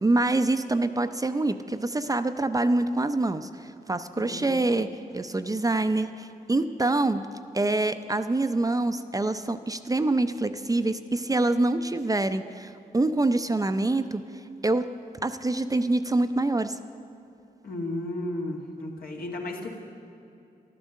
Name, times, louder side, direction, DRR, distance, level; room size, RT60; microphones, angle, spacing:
voice 1, 0.0-7.2 7.5-14.2 14.6-14.9 15.2-16.8, right 2 dB, 20° right, 10 dB, 0.5 m, -25 dB
voice 2, 4.2-4.5 17.6-19.8, left 1 dB, 70° left, 0 dB, 1.9 m, -34 dB
11.5 x 11.0 x 6.4 m, 2.7 s
cardioid pair, 60°, 16 cm